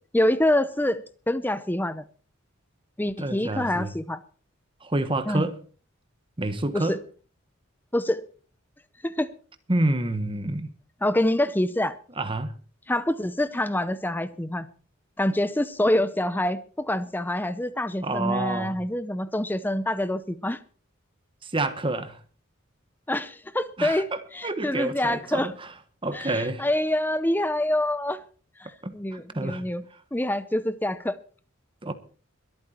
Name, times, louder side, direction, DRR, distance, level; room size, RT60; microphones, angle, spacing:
voice 1, 0.1-2.0 3.0-4.2 5.3-5.5 6.7-7.0 7.9-8.2 9.0-9.3 11.0-12.0 12.9-14.7 15.2-20.6 23.1-25.5 26.1-28.2 28.6-29.8 30.1-31.2, left 1 dB, 10° left, 0.6 m, -26 dB
voice 2, 3.2-3.9 4.8-5.6 6.4-7.0 9.7-10.7 12.2-12.5 18.0-18.8 21.4-22.2 23.8-25.7 26.0-26.6 28.8-29.6 31.8-31.9, right 2 dB, 25° right, 1.2 m, -28 dB
22.5 x 8.8 x 4.4 m
head